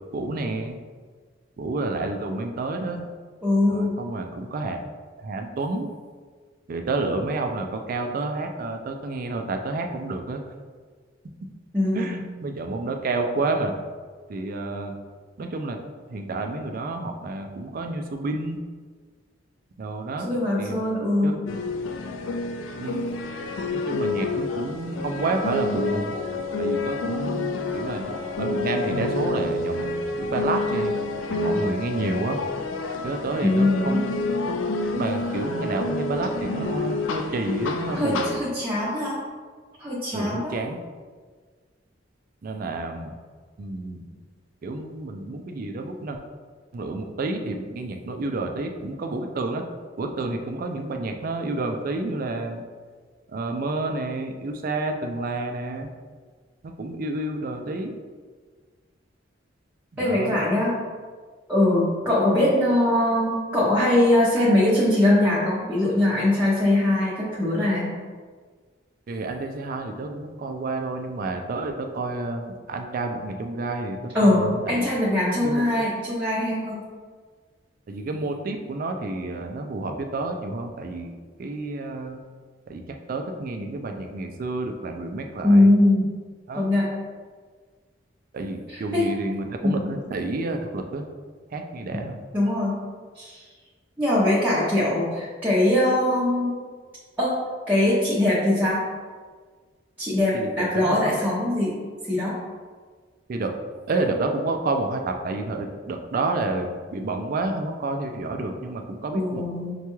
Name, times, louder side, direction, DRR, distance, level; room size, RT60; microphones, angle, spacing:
voice 1, 0.1-0.8 1.6-3.1 3.7-4.8 5.2-5.9 6.7-10.4 11.9-13.7 14.3-15.0 15.4-15.8 16.1-18.6 19.8-20.3 20.6-20.8 21.2-21.4 22.8-23.1 23.7-26.2 26.6-30.9 31.3-32.4 33.0-34.4 34.9-38.3 40.1-40.8 42.4-43.2 43.6-44.0 44.6-46.2 46.7-49.6 50.0-52.6 53.3-55.9 56.6-57.9 59.9-60.4 69.1-74.9 75.4-75.6 77.9-81.1 81.4-82.2 82.7-85.7 86.5-86.7 88.3-91.1 91.5-92.2 100.3-101.1 103.3-103.5 103.9-109.5, right 2 dB, 50° right, 4 dB, 0.4 m, -29 dB
voice 2, 3.4-4.0 11.7-12.2 20.2-21.4 33.4-34.1 37.9-39.2 39.8-40.5 60.0-60.7 61.5-67.9 74.1-76.8 85.4-86.1 86.5-86.9 88.7-89.1 89.6-89.9 91.9-92.0 92.3-92.8 93.1-93.4 94.0-96.5 97.2-97.4 97.7-98.8 100.0-101.7 102.1-102.3 109.1-109.7, left 1 dB, 10° right, -9 dB, 0.7 m, -21 dB
sound 1, 21.5-38.4, left 2 dB, 85° left, 0.4 m, -28 dB
5.6 x 2.3 x 3.0 m, 1.6 s
head